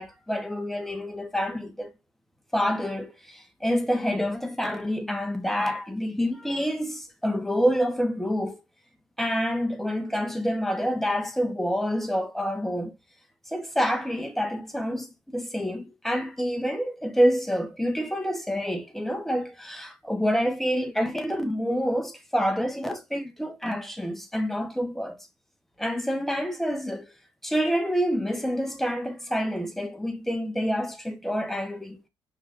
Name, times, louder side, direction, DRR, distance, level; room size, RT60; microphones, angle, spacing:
voice 1, 0.0-1.9 2.5-8.6 9.2-12.9 13.5-25.2 25.8-27.0 27.4-32.0, equal, 5° left, 1.0 m, -27 dB
5.4 x 3.3 x 2.5 m
cardioid pair, 110°, 10 cm